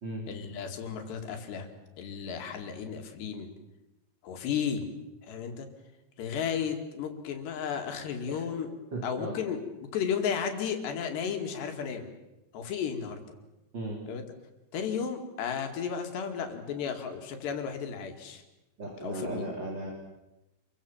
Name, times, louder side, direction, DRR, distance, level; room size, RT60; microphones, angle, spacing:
voice 1, 0.3-1.7 2.0-3.5 4.2-4.9 5.2-5.7 6.2-8.7 9.0-9.6 9.9-12.0 12.5-13.2 14.1-14.2 14.7-18.4 19.0-19.5, left 7 dB, 70° left, 5 dB, 4.5 m, -33 dB
voice 2, 8.9-9.4 13.7-14.0 18.8-19.9, right 2 dB, 25° right, 0 dB, 3.9 m, -36 dB
28.0 x 23.5 x 7.3 m, 0.96 s
omnidirectional pair, 5.1 m